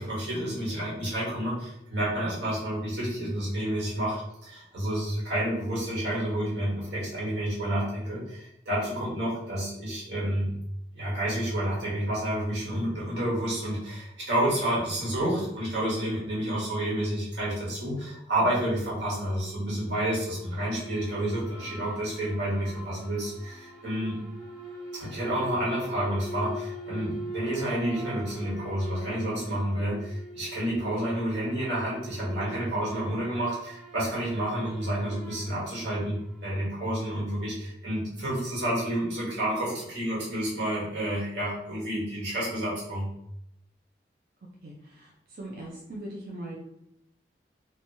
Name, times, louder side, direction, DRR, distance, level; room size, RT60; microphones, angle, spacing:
voice 1, 0.0-4.2 4.4-10.5 10.9-24.2 24.9-43.1, right 1 dB, 90° right, -6 dB, 1.5 m, -30 dB
sound 1, 20.2-36.8, right 1 dB, 5° right, 0.7 m, -42 dB
voice 2, 44.6-46.6, right 1 dB, 55° right, -4 dB, 0.4 m, -40 dB
2.9 x 2.2 x 2.7 m, 0.78 s
head